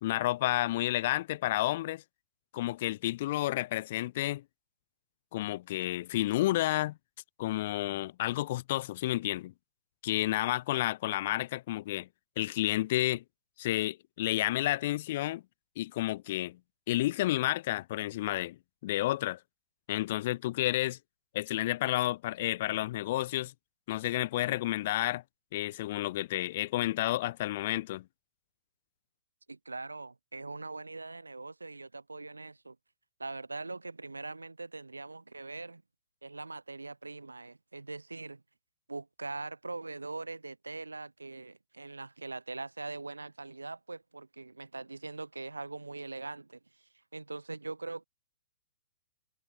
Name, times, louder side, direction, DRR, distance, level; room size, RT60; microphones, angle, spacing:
voice 1, 0.0-2.0 2.5-4.4 5.3-7.0 7.4-9.5 10.0-12.1 12.4-13.2 13.6-15.4 15.8-16.6 16.9-18.6 18.8-19.4 19.9-21.0 21.3-23.5 23.9-25.2 25.5-28.0, left 16 dB, 50° left, 1.6 m, -31 dB
voice 2, 29.5-32.8 33.2-35.8 36.2-38.4 38.9-46.8 47.1-48.0, right 3 dB, 90° right, 1.7 m, -42 dB
figure-of-eight pair, 115°, 0 cm